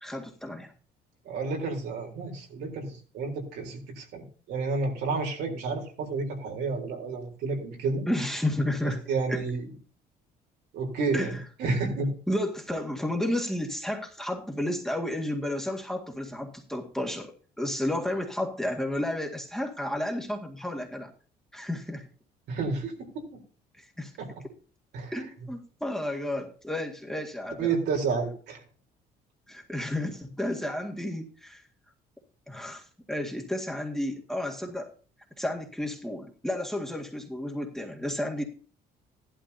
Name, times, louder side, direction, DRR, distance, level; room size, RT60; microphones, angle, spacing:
voice 1, 0.0-0.7 8.1-9.0 9.3-9.4 11.1-11.4 12.3-21.1 21.5-22.1 23.8-24.1 25.1-27.7 29.5-31.6 32.5-34.9 35.4-38.4, left 1 dB, 5° left, 1 dB, 1.9 m, -32 dB
voice 2, 1.3-8.0 8.8-9.6 10.7-12.1 22.5-23.4 24.2-24.3 24.9-25.1 27.6-28.6, right 4 dB, 80° right, 1 dB, 3.8 m, -30 dB
15.0 x 11.5 x 2.8 m, 0.39 s
cardioid pair, 110°, 17 cm